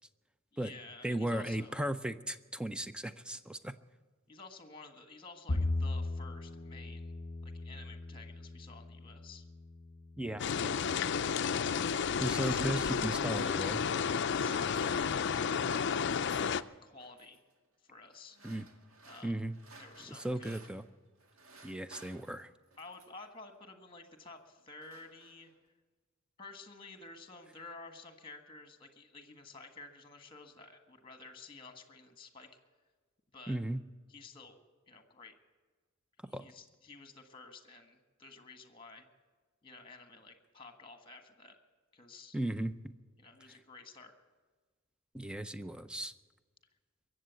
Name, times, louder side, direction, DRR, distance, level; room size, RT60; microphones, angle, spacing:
voice 1, 0.5-1.8 4.3-7.2 7.4-9.4 14.2-15.7 16.4-17.4 17.8-18.4 19.0-19.4 19.8-20.6 22.8-25.5 26.4-32.5 33.3-33.6 34.1-34.6 34.9-35.3 36.2-39.1 39.6-41.6 41.9-42.4 43.2-44.1, left 3 dB, 25° left, 7 dB, 1.6 m, -52 dB
voice 2, 1.0-3.7 10.2-10.8 12.2-13.8 18.4-18.7 19.2-19.6 20.1-20.8 21.6-22.5 33.5-33.8 36.3-36.5 42.3-42.9 45.1-46.1, right 1 dB, 5° right, 12 dB, 0.5 m, -36 dB
Bowed string instrument, 5.5-11.8, left 2 dB, 40° left, 0.9 m, -39 dB
sound 1, 10.4-16.6, left 6 dB, 55° left, 0.4 m, -32 dB
sound 2, 11.5-13.7 14.4-15.4 15.6-16.6 17.0-17.4 18.1-20.9 21.2-23.3 24.1-24.3 24.6-25.7, right 3 dB, 85° right, 1.8 m, -58 dB
23.0 x 7.7 x 8.1 m, 1.4 s
head